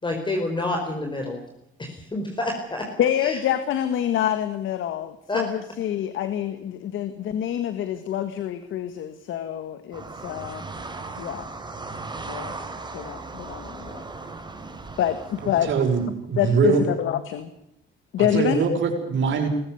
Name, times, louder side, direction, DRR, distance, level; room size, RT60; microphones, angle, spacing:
voice 1, 0.0-1.4 1.8-2.9 3.2-3.4 5.3-5.4, left 2 dB, 25° left, 3 dB, 4.6 m, -28 dB
voice 2, 3.0-10.6 11.2-11.5 12.3-12.5 12.9-14.0 15.0-15.7 16.4-17.5 18.1-18.6, left 10 dB, 80° left, 10 dB, 1.8 m, -26 dB
sound 1, 9.9-16.1, right 3 dB, 20° right, 4.5 m, -37 dB
voice 3, 15.6-16.8 18.2-19.5, right 5 dB, 70° right, 4 dB, 6.0 m, -22 dB
21.0 x 15.0 x 9.7 m, 0.77 s
cardioid pair, 90°, 20 cm